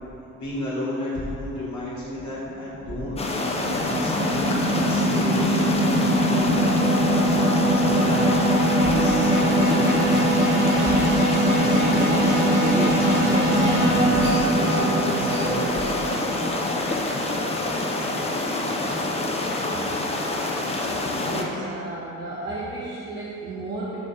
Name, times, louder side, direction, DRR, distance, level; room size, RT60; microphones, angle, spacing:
voice 1, 0.3-4.4 4.9-6.7 7.7-8.4 8.8-10.2 10.8-11.0 11.5-12.1 12.4-15.6, left 1 dB, 45° left, -8 dB, 1.0 m, -31 dB
sound 1, 2.2-18.6, right 1 dB, 60° right, 1.2 m, -22 dB
sound 2, 3.2-21.4, left 2 dB, 15° left, 0.4 m, -27 dB
sound 3, 11.3-13.4 14.1-14.9 15.3-15.4 15.8-16.0, equal, 85° right, 1.1 m, -43 dB
voice 2, 21.2-24.0, right 2 dB, 25° right, -7 dB, 0.7 m, -33 dB
4.5 x 3.4 x 2.6 m, 3.0 s
hypercardioid pair, 40°, 41 cm